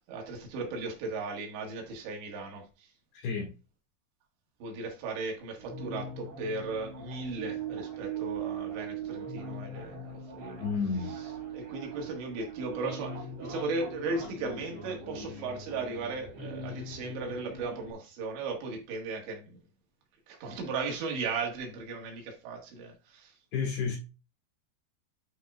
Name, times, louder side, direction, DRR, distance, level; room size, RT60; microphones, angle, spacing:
voice 1, 0.0-2.9 4.6-10.7 11.2-11.3 11.5-19.6 20.3-23.4, right 3 dB, 85° right, 3.9 m, -36 dB
voice 2, 3.1-3.5 10.6-11.1 23.5-24.0, left 5 dB, 65° left, 4.1 m, -31 dB
sound 1, 5.5-17.9, right 4 dB, 60° right, 5.5 m, -40 dB
11.0 x 4.6 x 2.4 m
omnidirectional pair, 5.0 m